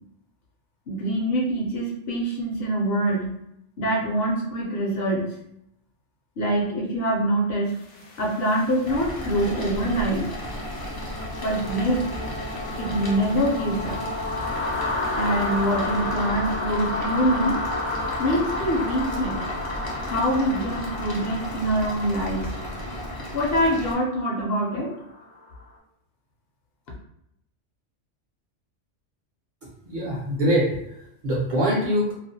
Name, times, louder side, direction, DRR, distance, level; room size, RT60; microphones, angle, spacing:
voice 1, 0.9-3.3 3.8-5.3 6.4-7.7 8.2-10.2 11.4-12.0 12.8-14.0 15.2-17.6 18.2-19.5 20.0-22.5 23.3-24.9, right 1 dB, 65° left, -2 dB, 0.8 m, -24 dB
sound 1, 7.8-25.6, left 2 dB, 90° left, 0.9 m, -32 dB
sound 2, 8.8-23.9, equal, 35° left, 0.3 m, -34 dB
voice 2, 29.8-32.1, equal, 55° right, -4 dB, 0.6 m, -24 dB
2.4 x 2.1 x 2.6 m, 0.78 s
omnidirectional pair, 1.2 m